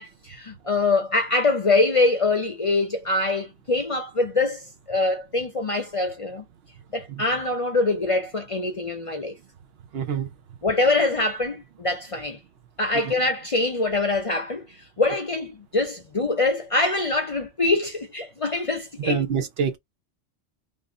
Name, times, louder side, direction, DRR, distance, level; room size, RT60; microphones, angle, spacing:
voice 1, 0.0-6.4 6.9-9.3 10.6-12.4 12.8-14.7 15.0-19.2, left 2 dB, 35° left, 0.6 m, -24 dB
voice 2, 9.9-10.3 19.1-19.8, right 7 dB, 65° right, 0.9 m, -25 dB
3.6 x 2.6 x 3.6 m
omnidirectional pair, 1.2 m